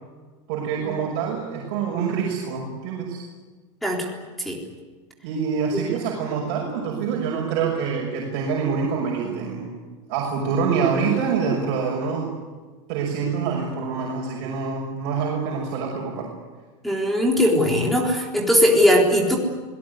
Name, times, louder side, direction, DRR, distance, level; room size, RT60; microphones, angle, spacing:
voice 1, 0.5-3.2 5.2-9.7 10.1-12.4 12.9-16.3, right 6 dB, 50° right, -2 dB, 6.2 m, -26 dB
voice 2, 16.8-19.4, equal, ahead, 0 dB, 3.8 m, -19 dB
26.5 x 18.5 x 9.8 m, 1.3 s
supercardioid pair, 170°, 15 cm